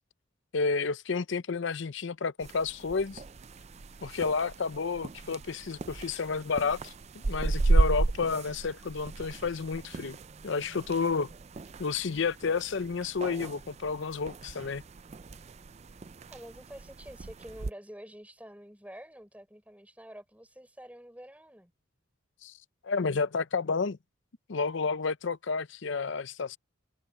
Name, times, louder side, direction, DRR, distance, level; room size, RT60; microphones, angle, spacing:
voice 1, 0.5-3.2 4.0-10.2 10.4-11.3 11.8-14.8 22.4-22.5 22.8-24.0 24.5-26.6, left 4 dB, 65° left, 0.6 m, -31 dB
sound 1, 2.4-17.7, right 2 dB, 30° right, 0.4 m, -34 dB
voice 2, 16.3-21.7, equal, 5° right, 4.9 m, -48 dB
head